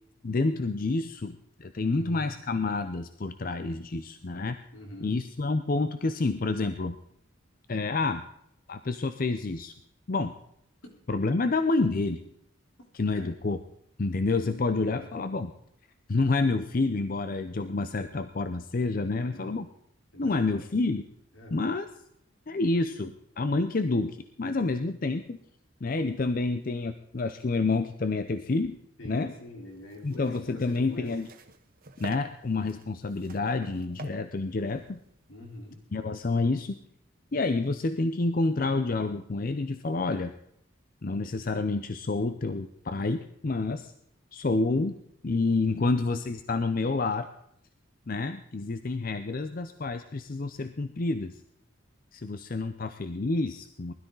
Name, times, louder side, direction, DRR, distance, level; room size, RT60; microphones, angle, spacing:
voice 1, 0.2-4.6 5.0-7.0 7.7-8.2 8.7-9.7 10.1-10.3 11.1-12.2 12.9-13.6 14.0-15.5 16.1-19.7 20.2-21.0 21.5-21.9 22.5-25.4 25.8-28.8 29.0-29.3 30.0-31.3 32.0-35.0 35.9-36.8 37.3-40.3 41.0-43.9 44.3-45.0 45.2-47.3 48.1-51.3 52.1-53.9, left 3 dB, 45° left, 10 dB, 0.6 m, -28 dB
voice 2, 1.9-2.3 4.7-5.2 13.1-13.3 14.7-15.2 19.1-19.7 20.1-20.6 21.3-21.6 29.0-31.2 35.3-35.8 45.7-46.1, left 1 dB, 80° left, 1 dB, 4.0 m, -45 dB
sound 1, 29.7-35.8, right 2 dB, 45° right, 1.3 m, -49 dB
20.5 x 12.5 x 3.9 m, 0.73 s
head